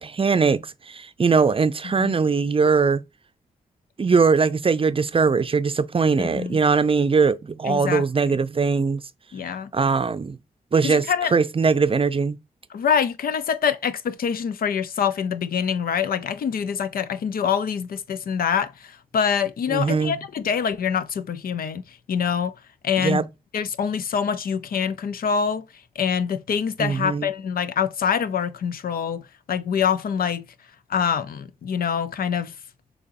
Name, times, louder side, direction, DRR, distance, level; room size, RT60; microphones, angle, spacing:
voice 1, 0.0-3.0 4.0-9.0 9.7-10.4 10.7-11.0 11.3-12.4 19.7-20.2 23.0-23.3 26.8-27.3, right 5 dB, 35° right, 0.5 m, -21 dB
voice 2, 6.2-6.6 7.6-8.0 9.3-9.7 10.8-11.3 12.7-22.5 22.8-23.2 23.5-30.5 30.9-32.6, left 7 dB, 70° left, 0.5 m, -25 dB
6.6 x 2.9 x 2.6 m
cardioid pair, 50°, 16 cm